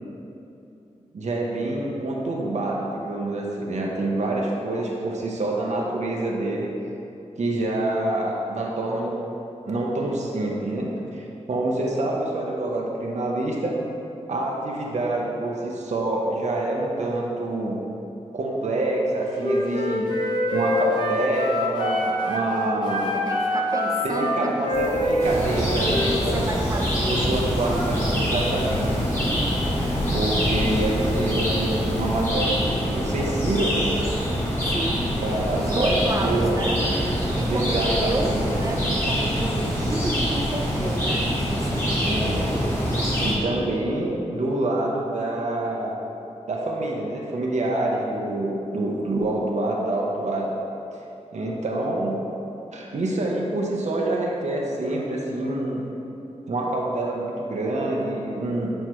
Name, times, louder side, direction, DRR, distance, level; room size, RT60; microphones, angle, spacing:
voice 1, 1.1-6.7 7.4-9.2 9.7-13.8 14.3-17.8 18.3-20.1 20.5-23.1 24.0-26.4 27.1-29.0 30.1-33.9 35.2-35.9 36.2-36.6 37.5-39.0 42.0-42.6 43.2-46.0 46.5-50.6 51.3-52.2 52.7-55.8 56.5-58.7, right 2 dB, 70° right, -2 dB, 0.8 m, -26 dB
Wind instrument woodwind instrument, 19.4-22.5 22.8-26.2, left 1 dB, 40° left, 1.0 m, -25 dB
voice 2, 23.1-27.4 27.7-28.2 28.8-29.4 34.7-35.1 35.5-36.8 37.2-42.1, right 2 dB, 25° right, 1 dB, 0.6 m, -31 dB
sound 1, 24.7-32.3, left 1 dB, 75° left, 0.7 m, -34 dB
sound 2, 25.2-43.4, equal, 20° left, 1.3 m, -25 dB
8.1 x 4.4 x 3.1 m, 2.8 s
wide cardioid pair, 130°, 12 cm